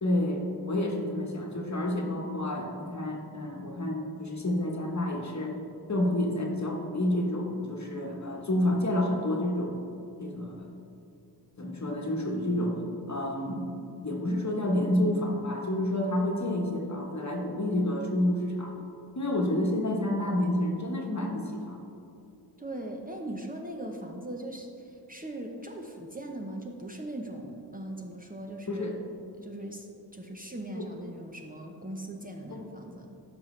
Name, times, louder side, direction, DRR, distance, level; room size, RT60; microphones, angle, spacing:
voice 1, 0.0-5.6 5.9-9.8 10.2-10.7 11.6-12.8 13.1-13.6 14.0-18.8 19.1-21.8 28.7-29.0 30.7-30.9 32.5-32.7, left 1 dB, 40° left, 1 dB, 1.2 m, -29 dB
voice 2, 22.6-29.0 29.4-33.1, right 1 dB, 20° right, 1 dB, 0.9 m, -40 dB
10.5 x 5.9 x 3.2 m, 2.7 s
cardioid pair, 40°, 42 cm